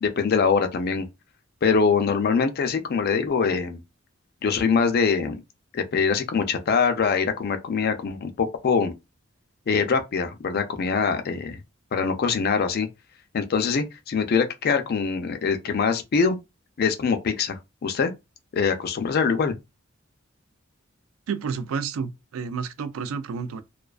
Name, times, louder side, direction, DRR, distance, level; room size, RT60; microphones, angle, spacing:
voice 1, 0.0-1.1 1.6-3.8 4.4-5.4 5.7-8.9 9.7-11.6 11.9-12.9 13.3-16.4 16.8-18.1 18.5-19.5, left 5 dB, 50° left, 0.4 m, -23 dB
voice 2, 21.3-23.6, right 6 dB, 85° right, 0.4 m, -30 dB
2.4 x 2.2 x 2.3 m
head